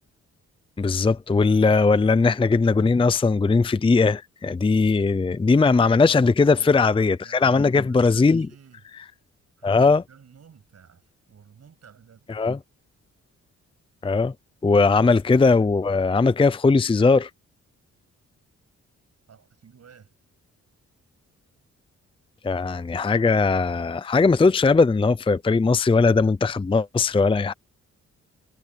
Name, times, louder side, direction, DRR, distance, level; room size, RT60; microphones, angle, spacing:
voice 1, 0.8-8.5 9.6-10.0 12.3-12.6 14.0-14.3 14.6-17.3 22.4-27.5, left 4 dB, 15° left, 0.6 m, -19 dB
voice 2, 6.1-8.9 9.6-12.3 19.3-20.1, right 7 dB, 55° right, 7.6 m, -52 dB
cardioid pair, 85°, 30 cm